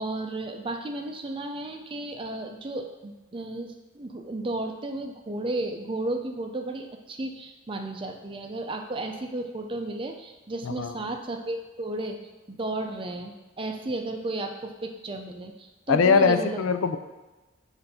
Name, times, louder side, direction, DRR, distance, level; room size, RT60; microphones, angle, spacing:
voice 1, 0.0-12.2 12.5-16.6, right 2 dB, 25° right, 4 dB, 0.4 m, -33 dB
voice 2, 15.9-17.0, left 5 dB, 80° left, 9 dB, 0.4 m, -21 dB
6.6 x 2.6 x 5.5 m, 1.2 s
head